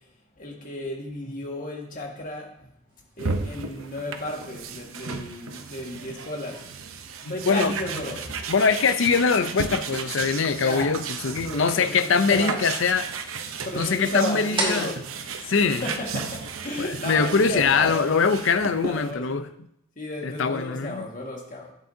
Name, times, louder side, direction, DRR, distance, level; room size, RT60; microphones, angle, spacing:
voice 1, 0.4-2.7 3.2-6.6 7.3-8.3 10.5-11.0 11.2-12.6 13.7-15.0 15.3-15.5 15.8-18.3 18.8-19.4 20.0-21.7, left 1 dB, 40° left, 0 dB, 1.7 m, -33 dB
sound 1, 2.9-16.5, right 1 dB, 25° right, 2.1 m, -41 dB
sound 2, 3.2-19.1, right 5 dB, 75° right, 0.7 m, -34 dB
voice 2, 7.3-7.7 8.5-13.1 13.7-14.9 15.5-15.8 16.8-19.5 20.2-21.0, left 5 dB, 60° left, 11 dB, 0.6 m, -23 dB
11.5 x 8.2 x 2.7 m, 0.76 s
head